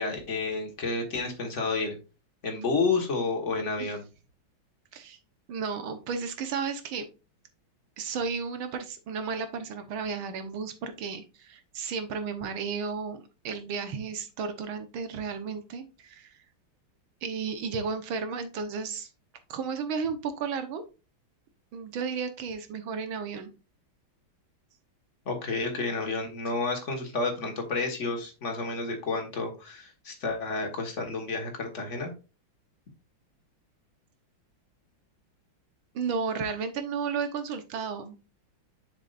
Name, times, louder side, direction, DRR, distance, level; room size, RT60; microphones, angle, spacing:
voice 1, 0.0-2.0 2.4-4.0 25.3-32.1, left 3 dB, 40° left, 3 dB, 1.8 m, -30 dB
voice 2, 5.5-7.1 8.0-16.3 17.2-19.1 19.5-20.8 21.7-23.5 35.9-38.2, right 5 dB, 80° right, 8 dB, 1.9 m, -33 dB
7.1 x 6.6 x 2.5 m, 0.31 s
omnidirectional pair, 2.2 m